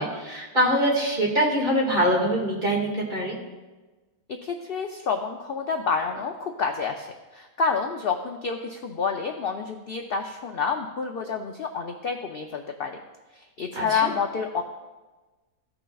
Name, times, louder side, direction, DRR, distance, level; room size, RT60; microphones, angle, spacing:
voice 1, 0.0-3.4 13.8-14.1, right 1 dB, 35° right, -3 dB, 2.0 m, -24 dB
voice 2, 4.3-13.0 13.3-14.6, left 5 dB, 65° left, 4 dB, 0.5 m, -29 dB
14.5 x 5.8 x 2.3 m, 1.2 s
omnidirectional pair, 1.6 m